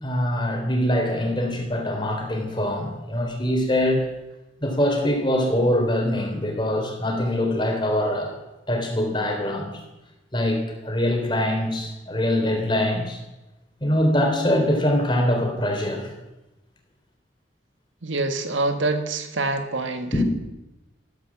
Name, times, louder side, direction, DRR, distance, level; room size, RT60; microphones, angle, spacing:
voice 1, 0.0-4.1 4.6-8.4 8.7-9.7 10.3-13.2 13.8-16.1 20.1-20.2, left 1 dB, 25° left, 3 dB, 3.3 m, -23 dB
voice 2, 18.0-20.2, right 2 dB, 85° right, 7 dB, 1.8 m, -26 dB
14.0 x 13.5 x 7.4 m, 1.0 s
head